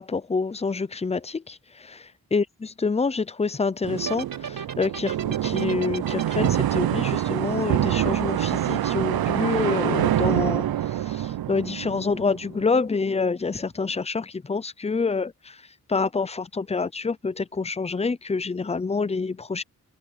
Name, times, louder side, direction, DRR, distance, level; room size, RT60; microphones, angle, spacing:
voice 1, 0.0-2.1 2.3-15.6 15.9-19.6, left 4 dB, 20° left, 0.5 m, -27 dB
sound 1, 3.8-12.6, right 12 dB, 85° right, 0.6 m, -25 dB
sound 2, 4.0-8.3, right 6 dB, 70° right, 5.2 m, -36 dB
wide cardioid pair, 125°, 35 cm